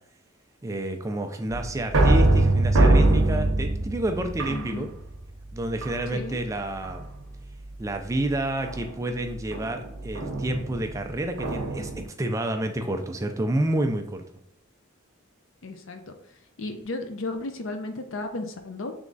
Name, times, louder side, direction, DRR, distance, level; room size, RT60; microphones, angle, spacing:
voice 1, 0.6-4.9 5.5-7.0 7.8-11.9 12.2-14.2, right 1 dB, 15° right, 5 dB, 0.3 m, -29 dB
sound 1, 1.5-5.2 5.8-6.4 6.8-7.2 8.7-12.0, right 2 dB, 85° right, 0.7 m, -23 dB
voice 2, 4.5-4.9 6.1-6.4 15.6-16.1 16.6-18.9, left 2 dB, 70° left, 6 dB, 0.6 m, -34 dB
3.5 x 3.1 x 3.9 m, 0.78 s
head